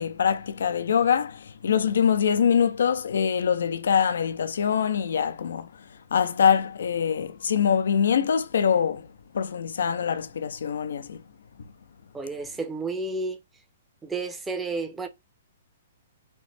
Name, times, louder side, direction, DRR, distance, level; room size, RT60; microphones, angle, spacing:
voice 1, 0.0-5.7 6.1-9.1 9.3-11.2, left 7 dB, 80° left, 0.5 m, -24 dB
voice 2, 12.1-13.4 14.0-15.1, right 3 dB, 10° right, 0.6 m, -31 dB
4.3 x 2.1 x 3.2 m
hypercardioid pair, 150°, 0 cm